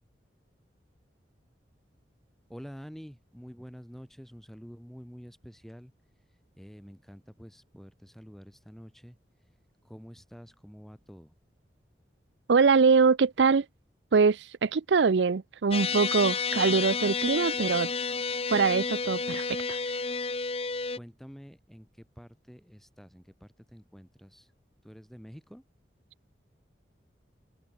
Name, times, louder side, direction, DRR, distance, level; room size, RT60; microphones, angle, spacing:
voice 1, 2.5-5.9 6.6-9.2 9.8-11.3 20.9-24.5 24.8-25.6, equal, ahead, 4.7 m, -48 dB
voice 2, 12.5-13.6 14.1-17.9 18.5-19.8, right 5 dB, 80° right, 0.5 m, -23 dB
sound 1, 15.7-21.0, left 5 dB, 30° left, 1.4 m, -31 dB
head